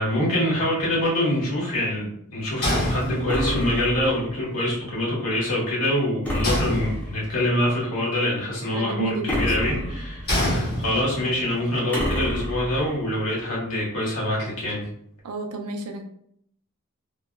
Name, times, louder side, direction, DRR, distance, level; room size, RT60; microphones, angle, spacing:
voice 1, 0.0-14.8, left 1 dB, 65° left, -5 dB, 1.2 m, -25 dB
sound 1, 2.6-3.7 6.4-7.5 10.3-11.4, left 1 dB, 45° left, 1.2 m, -26 dB
sound 2, 3.3-4.4 6.3-7.3 9.3-10.4 11.9-13.0, equal, 5° left, 0.7 m, -29 dB
voice 2, 8.7-9.8 15.2-16.0, right 4 dB, 85° right, 4 dB, 0.4 m, -31 dB
2.9 x 2.2 x 2.2 m, 0.69 s
head